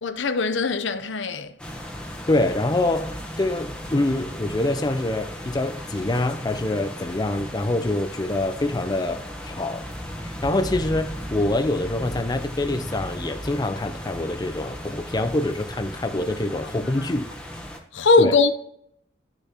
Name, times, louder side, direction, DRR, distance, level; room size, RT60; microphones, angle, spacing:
voice 1, 0.0-1.6 16.8-17.0 17.9-18.5, left 3 dB, 70° left, 0.7 m, -21 dB
sound 1, 1.6-17.8, equal, 5° left, 1.1 m, -36 dB
voice 2, 2.3-9.9 10.2-17.3 18.2-18.3, left 2 dB, 20° left, 0.4 m, -25 dB
12.0 x 6.6 x 2.9 m
head